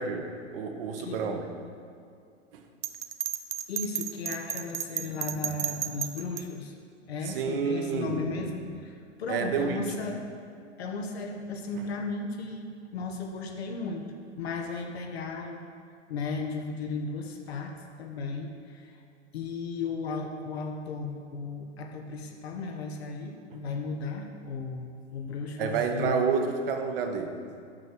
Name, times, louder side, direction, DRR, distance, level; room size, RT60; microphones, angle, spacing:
voice 1, 0.0-1.5 2.5-2.6 7.3-8.3 9.3-10.1 25.6-27.4, right 5 dB, 50° right, 5 dB, 1.0 m, -29 dB
Bell, 2.8-6.4, right 10 dB, 70° right, 0.6 m, -32 dB
voice 2, 3.7-6.7 7.1-10.2 10.8-15.7 16.1-19.0 19.3-26.3, left 4 dB, 60° left, 3 dB, 0.9 m, -35 dB
6.6 x 6.1 x 5.9 m, 2.4 s
figure-of-eight pair, 100°, 36 cm